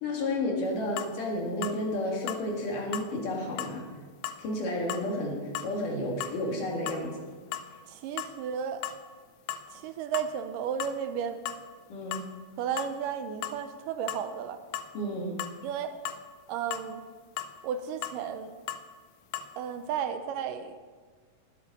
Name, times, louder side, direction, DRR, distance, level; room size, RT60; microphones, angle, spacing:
voice 1, 0.0-3.9 4.4-7.2 11.9-12.2 14.9-15.4, left 1 dB, 70° left, -1 dB, 3.7 m, -31 dB
sound 1, 1.0-1.1 1.6-1.8 2.3-2.5 2.9-3.1 3.6-3.8 4.2-4.4 4.9-5.1 5.5-5.7 6.2-6.4 6.9-7.0 7.4-7.8 8.2-8.4 8.8-9.0 9.5-9.7 10.1-10.3 10.8-11.0 11.5-11.6 12.1-12.3 12.8-12.9 13.4-13.6 14.1-14.3 14.7-14.9 15.4-15.6 16.1-16.2 16.7-16.9 17.4-17.6 18.0-18.2 18.7-18.9 19.3-19.5, left 10 dB, 90° left, 2.4 m, -37 dB
voice 2, 7.9-8.8 9.7-11.4 12.6-14.6 15.6-16.0 16.5-17.1 17.6-18.5 19.6-20.8, right 8 dB, 80° right, 9 dB, 2.2 m, -33 dB
20.0 x 7.8 x 4.2 m, 1.5 s
omnidirectional pair, 4.0 m